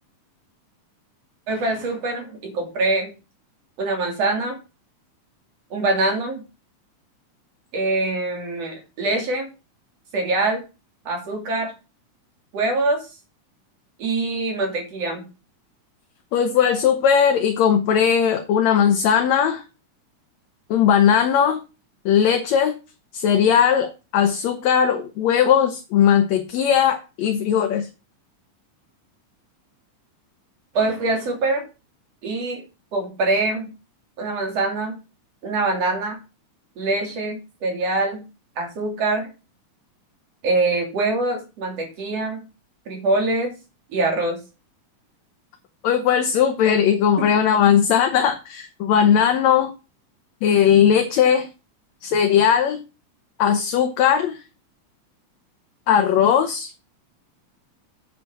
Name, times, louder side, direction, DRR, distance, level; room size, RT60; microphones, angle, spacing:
voice 1, 1.5-3.1 3.8-4.6 5.7-6.4 7.7-9.5 10.1-10.6 11.1-11.7 12.5-13.1 14.0-15.2 30.7-31.7 32.2-32.6 32.9-33.7 34.2-35.0 35.4-36.2 36.8-38.2 38.6-39.3 40.4-42.4 42.9-43.5 43.9-44.4 47.2-47.3, right 2 dB, 50° right, 2 dB, 3.7 m, -24 dB
voice 2, 16.3-19.6 20.7-21.6 22.1-22.8 23.1-27.9 45.8-49.7 50.4-51.5 52.0-52.8 53.4-54.4 55.9-56.7, left 8 dB, 65° left, 5 dB, 2.1 m, -18 dB
8.2 x 5.8 x 6.0 m, 0.30 s
omnidirectional pair, 3.6 m